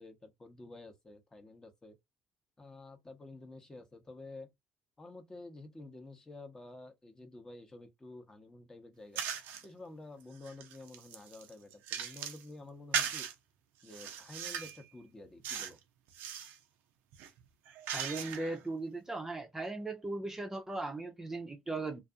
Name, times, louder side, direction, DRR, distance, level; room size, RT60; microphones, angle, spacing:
voice 1, 0.0-2.0 2.6-4.5 5.0-9.2 9.6-13.3 13.8-15.8, left 2 dB, 20° left, 0.8 m, -50 dB
sound 1, 9.2-9.7 10.2-12.4 12.9-13.3 13.9-14.8 15.4-15.8 16.1-16.6 17.1-18.6, right 8 dB, 75° right, 0.5 m, -38 dB
voice 2, 17.9-22.0, right 2 dB, 15° right, 0.6 m, -38 dB
2.5 x 2.5 x 2.4 m
supercardioid pair, 75°, 3 cm